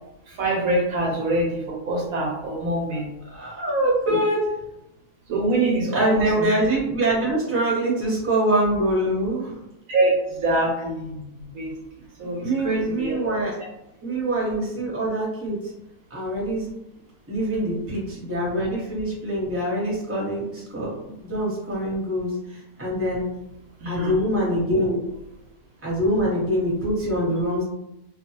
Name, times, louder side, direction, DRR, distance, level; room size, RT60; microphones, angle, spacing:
voice 1, 0.3-3.1 4.1-4.2 5.3-6.5 9.9-11.7 12.2-13.3 23.8-24.2, right 2 dB, 70° right, -1 dB, 0.9 m, -24 dB
voice 2, 3.3-4.4 5.9-9.6 12.4-13.6 14.0-15.7 16.1-16.7 17.3-23.2 23.8-25.0 25.8-27.6, right 1 dB, 10° right, -6 dB, 0.8 m, -24 dB
2.5 x 2.3 x 2.8 m, 0.89 s
omnidirectional pair, 1.6 m